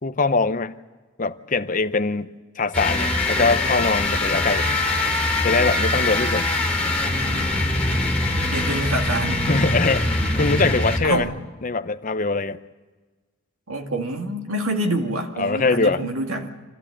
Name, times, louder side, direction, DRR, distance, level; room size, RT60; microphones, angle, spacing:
voice 1, 0.0-0.8 1.2-2.3 2.6-4.7 5.4-6.5 6.8-6.9 9.5-11.3 11.6-12.6 15.4-16.0, left 3 dB, 40° left, 11 dB, 0.7 m, -22 dB
sound 1, 2.7-11.2, left 2 dB, 5° left, 3.2 m, -23 dB
voice 2, 8.5-9.4 11.0-11.3 13.7-16.5, right 1 dB, 85° right, 3 dB, 2.2 m, -26 dB
27.0 x 14.0 x 8.5 m, 1.3 s
head